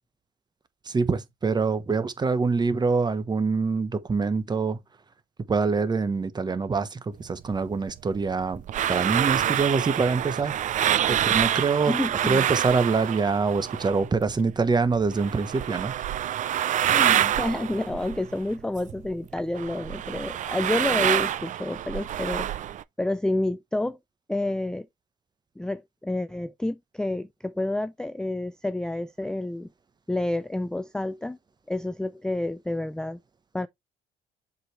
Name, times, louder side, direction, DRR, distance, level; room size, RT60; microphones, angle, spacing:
voice 1, 0.9-4.8 5.5-8.6 8.9-10.5 11.1-11.9 12.2-15.9, right 4 dB, 25° right, 1.1 m, -25 dB
sound 1, 7.5-14.2 14.5-19.1 19.4-22.8, right 11 dB, 50° right, 0.5 m, -27 dB
voice 2, 11.9-12.5 16.9-22.6 23.0-24.0 24.3-24.9 25.6-29.7 30.1-31.4 31.7-33.2 33.5-33.7, left 1 dB, 5° left, 0.4 m, -29 dB
7.4 x 4.9 x 3.3 m
cardioid pair, 110°, 17 cm